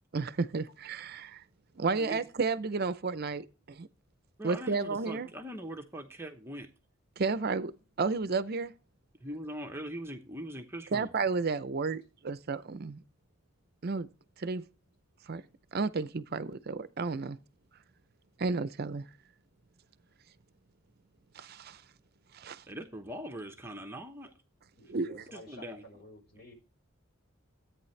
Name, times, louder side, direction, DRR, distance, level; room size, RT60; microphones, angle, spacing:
voice 1, 0.1-1.4 1.8-3.9 4.4-5.3 7.2-7.7 8.0-8.7 10.9-13.0 13.8-14.1 14.4-14.6 15.3-15.4 15.7-17.4 18.4-19.0 21.3-21.8 22.3-22.6 24.9-25.2, right 4 dB, 50° right, 0.6 m, -32 dB
voice 2, 1.9-2.3 4.4-6.7 9.2-11.1 22.7-24.3 25.3-25.8, equal, 10° right, 0.9 m, -41 dB
voice 3, 24.7-26.5, left 1 dB, 50° left, 4.3 m, -52 dB
13.5 x 8.8 x 3.2 m
head